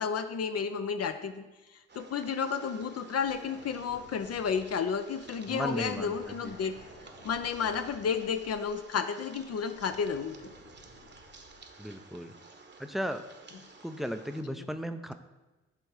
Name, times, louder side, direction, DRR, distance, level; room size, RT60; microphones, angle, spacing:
voice 1, 0.0-1.5 2.0-6.7 7.2-10.5, left 6 dB, 45° left, 9 dB, 0.5 m, -32 dB
sound 1, 1.9-14.4, right 3 dB, 30° right, 1.0 m, -53 dB
sound 2, 3.1-8.9 9.3-11.8 14.2-14.3, left 2 dB, 80° left, 2.1 m, -56 dB
voice 2, 5.5-6.5 11.8-12.3 12.8-13.2 13.8-15.1, equal, ahead, 8 dB, 0.5 m, -35 dB
6.8 x 3.4 x 4.8 m, 1.1 s
hypercardioid pair, 40°, 35 cm